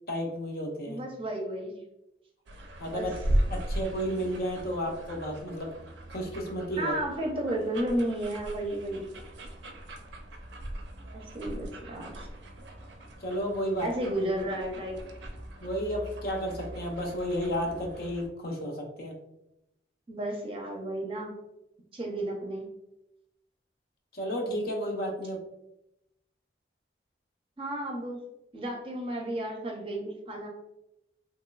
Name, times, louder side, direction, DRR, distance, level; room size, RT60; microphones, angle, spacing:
voice 1, 0.1-1.0 2.8-3.1 3.5-5.7 6.1-6.9 13.2-13.9 15.6-19.1 24.1-25.4, equal, 55° left, 1 dB, 0.6 m, -32 dB
voice 2, 0.9-1.8 2.9-3.1 6.8-9.1 11.1-12.3 13.8-15.1 20.1-21.4 21.9-22.7 27.6-28.2 28.5-30.5, right 1 dB, 30° right, 0 dB, 0.5 m, -33 dB
sound 1, 2.5-18.3, right 1 dB, 80° right, 0.5 m, -38 dB
3.0 x 2.9 x 2.3 m, 0.86 s
head